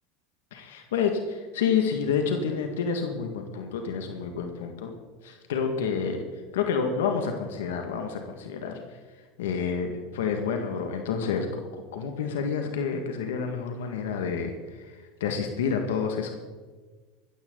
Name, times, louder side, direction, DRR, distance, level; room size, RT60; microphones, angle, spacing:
voice 1, 0.5-4.9 5.2-9.0 9.4-16.3, left 6 dB, 85° left, 4 dB, 1.9 m, -29 dB
15.0 x 14.0 x 4.0 m, 1.4 s
supercardioid pair, 105°, 0 cm